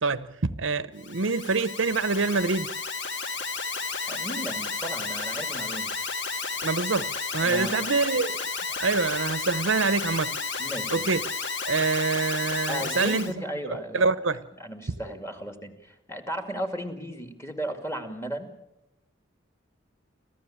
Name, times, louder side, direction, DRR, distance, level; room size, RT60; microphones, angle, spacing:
voice 1, 0.0-2.7 6.6-8.4 8.8-10.4 10.9-11.2 11.6-13.3 13.9-14.4, right 4 dB, 80° right, 0.9 m, -26 dB
Alarm, 1.0-13.3, left 4 dB, 65° left, 1.9 m, -32 dB
voice 2, 4.1-5.9 7.4-7.9 10.6-11.1 12.7-14.1 14.6-18.5, right 1 dB, 15° left, 2.3 m, -35 dB
27.0 x 15.0 x 8.7 m
head